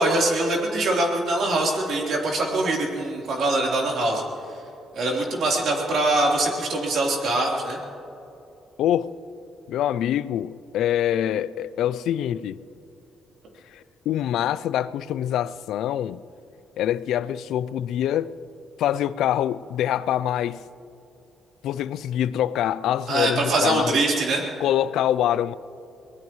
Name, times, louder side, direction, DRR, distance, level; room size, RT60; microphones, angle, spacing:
voice 1, 0.0-4.2 4.9-7.8 23.1-24.4, right 2 dB, 65° right, 3.7 m, -23 dB
voice 2, 8.8-9.1 9.7-12.6 13.7-16.2 16.8-18.3 18.8-20.6 21.6-24.0 24.6-25.5, left 11 dB, 80° left, 0.4 m, -25 dB
22.5 x 19.5 x 3.2 m
cardioid pair, 90°, 0 cm